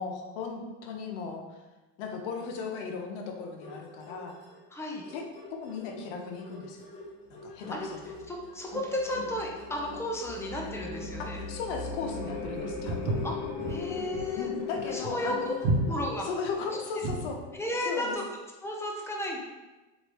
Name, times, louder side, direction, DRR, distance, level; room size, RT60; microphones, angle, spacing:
voice 1, 0.0-1.6 2.0-4.4 5.1-5.2 5.5-6.8 7.3-7.7 11.4-13.2 14.4-15.7 16.2-17.4 17.9-18.2, left 4 dB, 75° left, 2 dB, 0.7 m, -36 dB
sound 1, 3.6-4.6 4.9-15.6, left 3 dB, 35° left, 1.0 m, -45 dB
voice 2, 4.7-5.0 7.7-7.9 8.3-11.4 13.2-13.4 13.7-14.5 14.9-15.5 15.8-16.3 17.5-18.2 18.6-19.4, left 1 dB, 10° left, -1 dB, 0.4 m, -33 dB
sound 2, 7.8-18.1, left 5 dB, 10° right, 1.4 m, -40 dB
Walk footsteps, 12.9-17.3, right 2 dB, 55° right, 0.8 m, -31 dB
3.2 x 2.6 x 3.0 m, 1.2 s
supercardioid pair, 115°, 35 cm